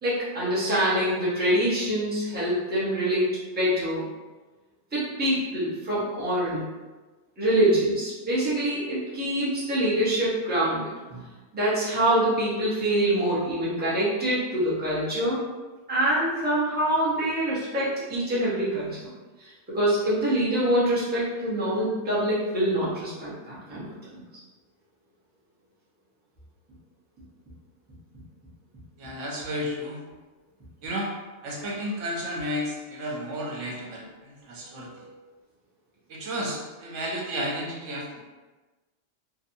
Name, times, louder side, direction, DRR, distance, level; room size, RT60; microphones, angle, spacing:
voice 1, 0.0-3.3 3.5-4.1 4.9-6.6 7.4-11.2 11.5-15.4 15.9-19.1 19.4-24.2, right 1 dB, 10° right, -9 dB, 0.6 m, -25 dB
voice 2, 29.0-30.0 30.8-31.1 31.4-35.0 36.1-38.2, equal, 85° right, -2 dB, 1.0 m, -32 dB
2.7 x 2.2 x 2.6 m, 1.2 s
omnidirectional pair, 1.2 m